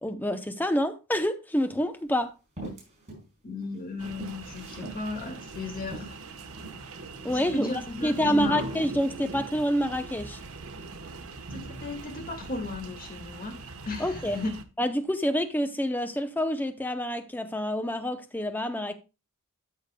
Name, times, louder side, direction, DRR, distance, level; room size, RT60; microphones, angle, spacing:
voice 1, 0.0-2.3 7.2-7.7 8.0-10.4 14.0-14.4 14.8-18.9, equal, 10° left, 0.6 m, -27 dB
sound 1, 1.7-1.8 2.6-3.3 3.6-5.0 5.5-5.6 5.9-6.8 7.5-8.2 8.6-8.9, right 2 dB, 30° right, 4.9 m, -43 dB
voice 2, 3.4-6.2 7.3-8.7 11.5-14.6, left 3 dB, 40° left, 1.9 m, -36 dB
sound 2, 4.0-14.6, right 3 dB, 70° right, 1.1 m, -41 dB
13.0 x 6.5 x 2.2 m
head